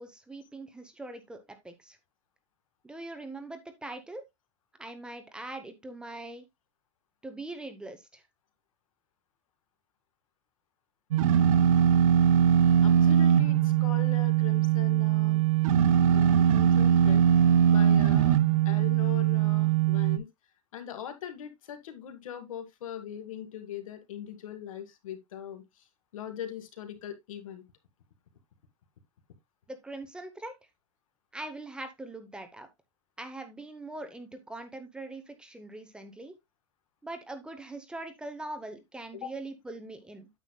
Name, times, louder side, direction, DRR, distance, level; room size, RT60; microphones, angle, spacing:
voice 1, 0.0-2.0 2.8-4.2 4.8-6.4 7.2-8.2 29.7-30.5 31.3-32.7 33.2-36.3 37.0-40.3, right 2 dB, 5° right, 0.9 m, -42 dB
sound 1, 11.1-20.2, right 9 dB, 85° right, 0.8 m, -22 dB
voice 2, 12.8-15.4 16.1-17.2 17.7-18.4 18.7-20.2 20.7-25.6 26.1-27.6 39.1-39.3, left 9 dB, 90° left, 1.9 m, -40 dB
9.1 x 8.1 x 2.3 m
supercardioid pair, 155°, 17 cm